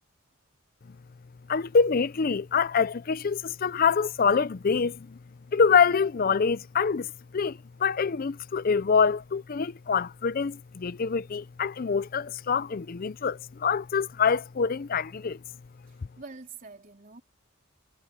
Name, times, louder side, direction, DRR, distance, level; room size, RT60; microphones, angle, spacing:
voice 1, 1.5-5.2 5.5-7.1 7.3-15.4, left 5 dB, 45° left, 0.4 m, -25 dB
voice 2, 15.9-17.2, right 4 dB, 40° right, 3.6 m, -46 dB
head